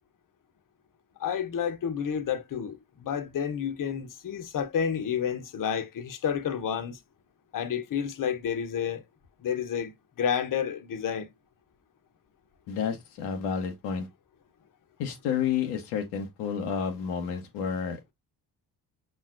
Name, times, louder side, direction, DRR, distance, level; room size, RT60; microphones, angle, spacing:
voice 1, 1.2-7.0 7.5-9.0 9.4-11.3, left 8 dB, 40° left, 0.8 m, -30 dB
voice 2, 12.7-14.1 15.0-18.1, left 7 dB, 80° left, 0.7 m, -30 dB
5.4 x 2.2 x 2.4 m
hypercardioid pair, 40°, 49 cm